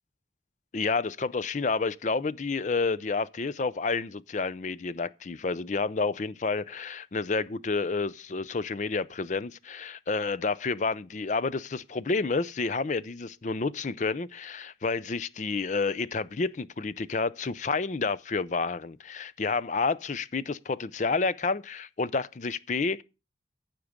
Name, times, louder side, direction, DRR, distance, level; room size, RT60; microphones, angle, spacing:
voice 1, 0.7-23.0, left 4 dB, 40° left, 0.5 m, -30 dB
15.0 x 6.0 x 5.1 m
head